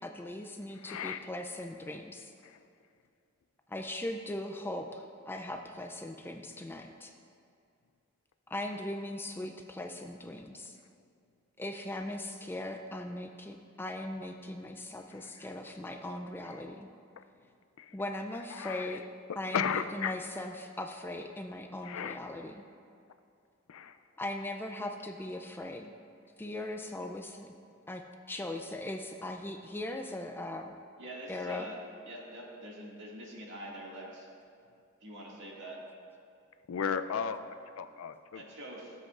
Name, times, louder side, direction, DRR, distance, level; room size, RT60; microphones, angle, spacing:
voice 1, 0.0-2.3 3.7-7.1 8.5-10.8 11.6-16.9 17.9-19.1 19.4-22.6 24.2-25.9 26.4-27.5 27.9-30.7 31.3-31.7, left 1 dB, 10° left, 5 dB, 0.3 m, -39 dB
voice 2, 0.7-1.2 2.4-2.6 15.1-15.5 16.4-16.6 17.8-18.0 18.5-19.0 19.5-20.2 21.8-22.2 23.7-24.0 36.7-38.4, left 7 dB, 80° left, 10 dB, 0.4 m, -35 dB
voice 3, 31.0-31.8 32.1-34.3 35.0-35.8 38.3-38.9, right 1 dB, 60° right, -4 dB, 2.0 m, -45 dB
15.5 x 7.7 x 2.4 m, 2.4 s
head